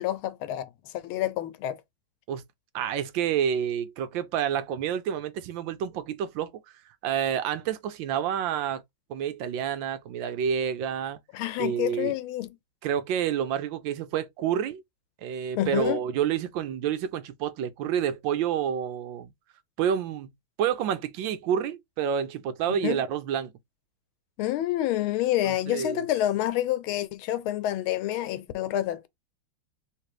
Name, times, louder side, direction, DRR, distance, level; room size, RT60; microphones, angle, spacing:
voice 1, 0.0-1.8 11.3-12.5 15.6-16.0 22.7-23.0 24.4-29.1, left 13 dB, 85° left, 1.5 m, -28 dB
voice 2, 2.7-6.5 7.0-8.8 9.1-11.2 11.6-12.1 12.8-14.8 15.2-19.3 19.8-20.3 20.6-23.5 25.5-26.0, right 8 dB, 75° right, 1.3 m, -28 dB
3.2 x 3.2 x 4.7 m
omnidirectional pair, 2.2 m